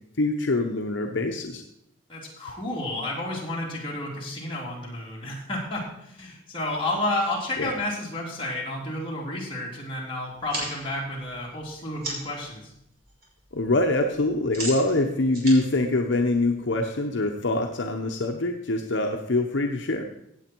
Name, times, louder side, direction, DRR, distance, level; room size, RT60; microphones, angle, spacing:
voice 1, 0.2-1.6 7.6-7.7 13.5-20.0, left 2 dB, 65° left, 4 dB, 0.9 m, -24 dB
voice 2, 2.1-12.7, left 1 dB, 25° left, -4 dB, 3.3 m, -31 dB
sound 1, 10.3-12.4 12.8-13.3 13.5-16.8, right 1 dB, 45° right, 3.6 m, -37 dB
15.5 x 8.0 x 4.5 m, 0.79 s
head